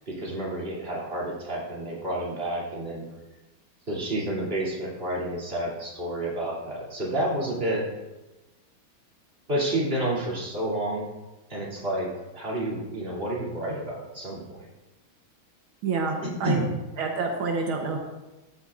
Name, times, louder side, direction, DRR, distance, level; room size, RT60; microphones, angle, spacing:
voice 1, 0.1-3.0 3.9-7.9 9.5-11.0 11.5-14.7 16.2-16.7, right 1 dB, 30° right, -5 dB, 3.1 m, -30 dB
voice 2, 15.8-16.6 17.0-18.0, right 4 dB, 80° right, 1 dB, 1.9 m, -27 dB
14.0 x 10.5 x 2.5 m, 1.1 s
omnidirectional pair, 2.2 m